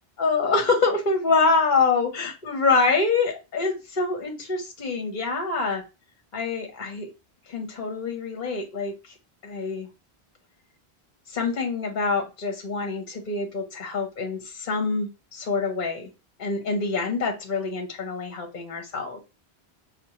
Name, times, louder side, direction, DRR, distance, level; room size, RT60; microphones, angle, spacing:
voice 1, 0.2-5.8 6.3-7.1 7.5-8.9 9.4-9.9 11.3-16.1 16.4-19.2, left 4 dB, 50° left, 3 dB, 0.9 m, -25 dB
5.8 x 2.2 x 2.9 m, 0.28 s
omnidirectional pair, 1.1 m